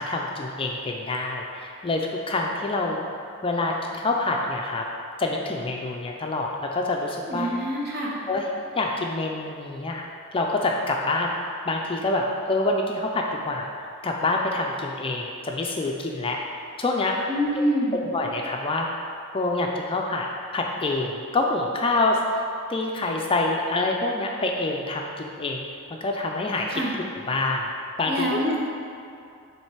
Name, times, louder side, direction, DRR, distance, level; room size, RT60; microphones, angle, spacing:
voice 1, 0.0-3.0 3.4-4.8 5.2-7.5 8.3-8.5 8.8-10.0 10.3-11.3 11.7-13.7 14.0-16.4 16.8-17.2 18.1-18.9 19.3-20.3 20.5-22.4 22.7-26.8 27.3-27.7 28.0-28.4, left 2 dB, 25° left, 0 dB, 0.4 m, -26 dB
voice 2, 7.3-8.1 17.3-18.0 26.7-26.9 28.1-28.7, equal, 50° right, -3 dB, 1.0 m, -26 dB
7.3 x 3.2 x 4.6 m, 2.4 s
head